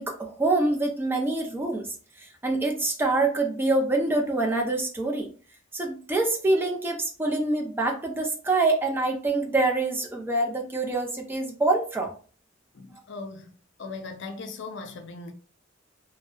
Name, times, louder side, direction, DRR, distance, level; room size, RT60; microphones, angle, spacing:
voice 1, 0.0-1.9 2.2-5.3 5.7-12.1, right 2 dB, 10° right, 0.4 m, -25 dB
voice 2, 12.7-13.5 13.8-15.3, left 3 dB, 65° left, 0.5 m, -38 dB
2.6 x 2.1 x 2.2 m
head